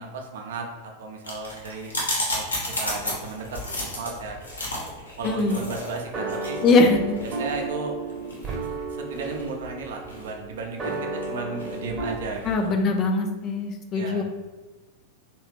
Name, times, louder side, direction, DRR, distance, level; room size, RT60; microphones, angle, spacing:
voice 1, 0.0-2.5 2.8-3.4 3.8-4.4 5.2-6.6 7.2-7.9 8.4-11.0 11.3-12.7 13.9-14.2, right 4 dB, 60° right, 2 dB, 0.5 m, -35 dB
sound 1, 1.2-12.6, left 1 dB, 75° left, 0.9 m, -34 dB
voice 2, 5.2-5.6 6.6-7.0 12.4-14.2, left 3 dB, 30° left, 5 dB, 0.5 m, -21 dB
sound 2, 5.3-12.2, right 3 dB, 25° right, 0.9 m, -33 dB
3.2 x 3.0 x 3.1 m, 1.1 s
figure-of-eight pair, 90°, 0 cm